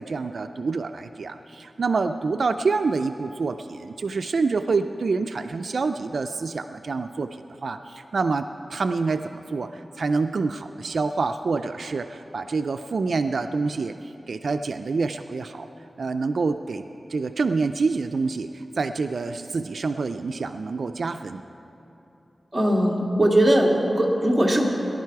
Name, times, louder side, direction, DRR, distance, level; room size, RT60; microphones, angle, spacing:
voice 1, 0.0-15.7 16.0-21.4, right 4 dB, 70° right, 8 dB, 0.3 m, -27 dB
voice 2, 22.5-24.6, right 1 dB, 10° right, -2 dB, 2.0 m, -20 dB
19.0 x 11.0 x 4.7 m, 3.0 s
wide cardioid pair, 120°, 0 cm